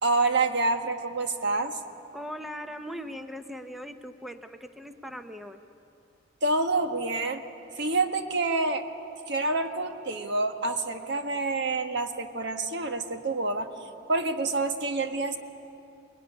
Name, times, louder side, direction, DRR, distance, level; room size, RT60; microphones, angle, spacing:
voice 1, 0.0-1.8 6.4-7.4 7.8-8.8 9.3-13.7 14.1-15.4, right 3 dB, 60° right, 6 dB, 1.5 m, -27 dB
voice 2, 2.1-5.6, equal, ahead, 7 dB, 0.7 m, -39 dB
23.0 x 21.5 x 9.9 m, 2.7 s
head